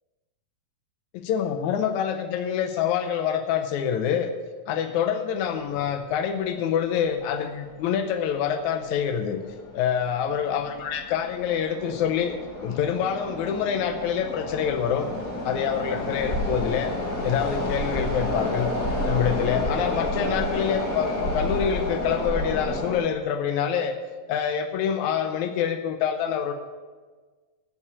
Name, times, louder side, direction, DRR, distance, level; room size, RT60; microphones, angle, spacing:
voice 1, 1.1-4.3 4.7-9.4 9.7-15.1 15.4-16.9 17.2-18.7 19.1-24.0 24.3-26.5, left 8 dB, 85° left, 6 dB, 1.7 m, -26 dB
sound 1, 6.1-6.2 6.5-6.6 7.3-7.5 7.8-8.0 8.5-8.9 9.4-23.0, left 1 dB, 30° left, 2.2 m, -30 dB
14.5 x 5.6 x 8.2 m, 1.4 s
omnidirectional pair, 4.2 m